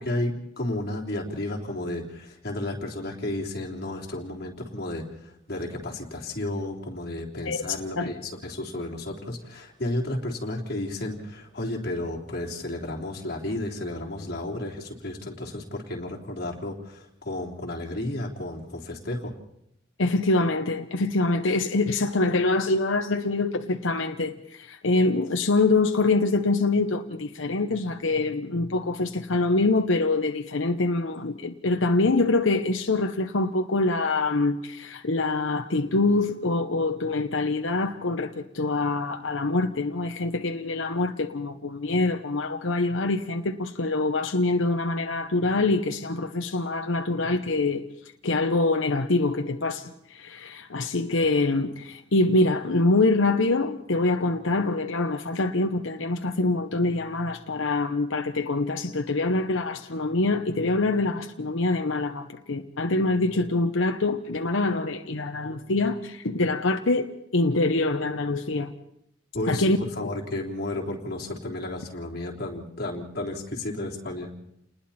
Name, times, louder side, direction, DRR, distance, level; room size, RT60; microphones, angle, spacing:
voice 1, 0.1-19.3 69.3-74.3, left 1 dB, 50° left, 3.5 m, -32 dB
voice 2, 20.0-47.9 48.2-68.7 69.5-70.1, left 2 dB, 90° left, 1.0 m, -25 dB
29.5 x 20.5 x 4.3 m
head